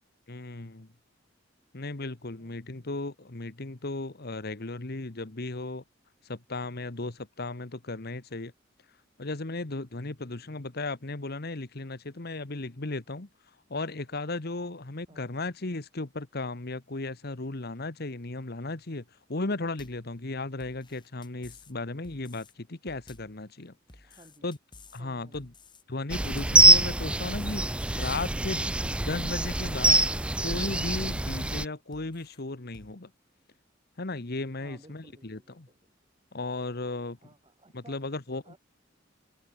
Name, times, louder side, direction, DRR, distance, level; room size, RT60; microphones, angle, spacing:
voice 1, 0.3-0.9 1.7-5.8 6.2-8.5 9.2-13.3 13.7-19.0 19.3-23.7 24.4-24.6 24.9-25.5 25.9-30.1 30.4-33.1 34.0-35.7 36.3-37.2 37.7-38.6, left 2 dB, 55° left, 1.4 m, -35 dB
voice 2, 10.2-10.6 15.1-15.3 24.0-24.5 25.0-25.5 34.6-36.0 37.2-38.0 38.4-38.6, right 1 dB, 25° right, 7.2 m, -57 dB
sound 1, 19.8-20.1 20.6-21.7 22.0-22.5 22.9-23.4 23.9-25.0 25.3-25.8 26.2-26.7 27.2-28.3 28.6-29.1 29.5-30.0 30.5-31.6 31.9-32.4 32.7-32.9, left 2 dB, 25° left, 6.4 m, -54 dB
sound 2, 26.1-31.6, right 2 dB, 5° right, 0.3 m, -24 dB
head